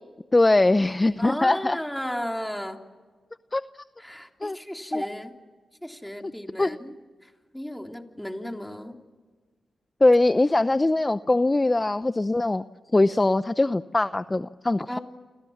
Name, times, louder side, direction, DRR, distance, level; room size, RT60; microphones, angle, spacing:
voice 1, 0.3-1.8 3.5-3.6 4.4-4.6 4.9-5.0 6.2-6.3 6.6-6.8 10.0-12.6 12.9-15.0, left 2 dB, 25° left, 13 dB, 0.7 m, -21 dB
voice 2, 1.2-2.8 4.0-5.4 5.8-6.9 7.2-9.0 14.9-15.0, equal, 5° left, 3 dB, 3.3 m, -34 dB
29.5 x 26.5 x 7.3 m, 1.5 s
cardioid pair, 60°, 0 cm